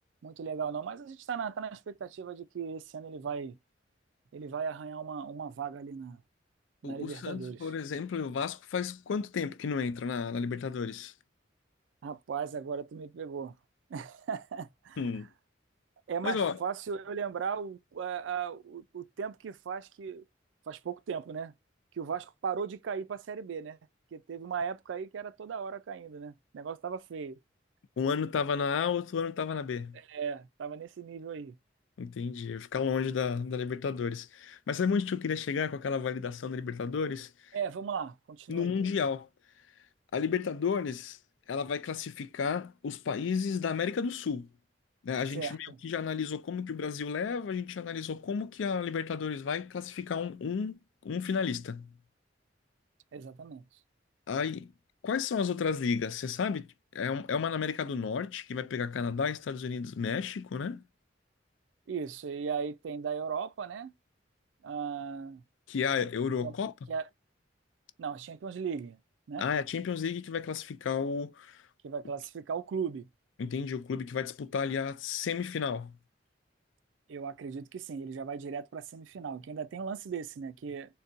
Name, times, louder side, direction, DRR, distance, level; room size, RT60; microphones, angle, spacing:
voice 1, 0.2-3.6 4.3-6.2 6.8-7.7 12.0-13.5 13.9-15.0 16.1-20.3 20.7-21.5 21.9-23.8 24.1-27.4 29.9-31.6 37.5-38.7 45.3-45.8 53.1-53.6 61.9-63.9 64.6-65.4 66.4-66.6 66.9-67.1 68.0-69.0 69.3-69.5 71.8-73.1 77.1-81.0, right 6 dB, 80° right, 0.4 m, -37 dB
voice 2, 6.8-11.1 15.0-15.3 16.2-16.6 28.0-30.0 32.0-37.3 38.5-39.3 40.1-41.2 41.5-44.5 45.0-51.9 54.3-54.7 55.0-60.8 65.7-66.7 69.4-71.6 73.4-76.0, left 6 dB, 85° left, 0.4 m, -32 dB
3.9 x 2.2 x 2.5 m
head